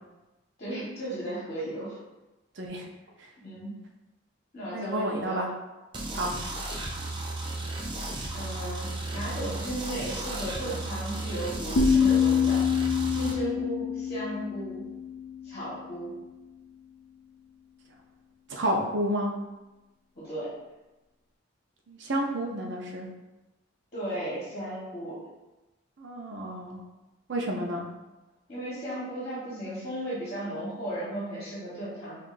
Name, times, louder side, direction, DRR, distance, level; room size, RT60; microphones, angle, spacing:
voice 1, 0.6-2.0 3.4-3.7 4.5-5.4 6.1-6.3 8.3-12.6 13.1-14.8 15.4-16.1 20.1-20.5 23.9-25.2 28.5-32.2, right 1 dB, 35° left, -9 dB, 1.3 m, -35 dB
voice 2, 4.7-5.5 6.2-6.3 18.5-19.3 21.9-23.1 26.0-26.8 27.3-27.8, right 1 dB, 65° right, 0 dB, 0.6 m, -30 dB
sound 1, 5.9-13.3, right 2 dB, 25° right, 0.4 m, -34 dB
sound 2, 11.8-15.6, left 6 dB, 55° left, 0.3 m, -26 dB
5.5 x 2.5 x 2.5 m, 1.1 s
head